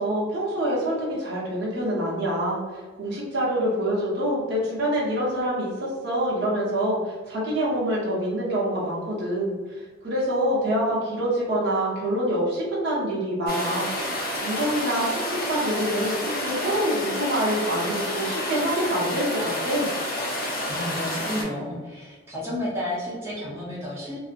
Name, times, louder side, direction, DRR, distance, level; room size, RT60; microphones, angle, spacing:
voice 1, 0.0-13.9 14.1-15.2 15.5-19.9, equal, 50° right, -5 dB, 0.7 m, -26 dB
sound 1, 13.5-21.4, left 1 dB, 45° left, 0.5 m, -29 dB
voice 2, 20.7-24.2, left 1 dB, 10° right, -8 dB, 0.5 m, -31 dB
2.4 x 2.0 x 2.5 m, 1.4 s
head